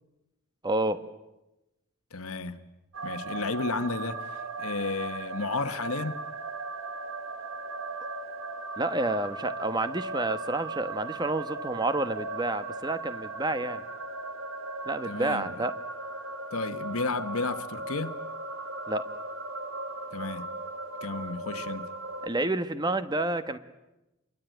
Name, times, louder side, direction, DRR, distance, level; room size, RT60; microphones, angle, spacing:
voice 1, 0.6-1.0 8.8-13.8 14.9-15.7 18.9-19.0 22.2-23.6, right 2 dB, 20° right, 1.2 m, -29 dB
voice 2, 2.1-2.7 3.0-6.2 15.0-15.5 16.5-18.2 20.1-20.5 21.0-21.9, left 3 dB, 75° left, 1.3 m, -32 dB
sound 1, 2.9-22.3, right 3 dB, 60° right, 2.0 m, -37 dB
27.0 x 23.0 x 9.2 m
head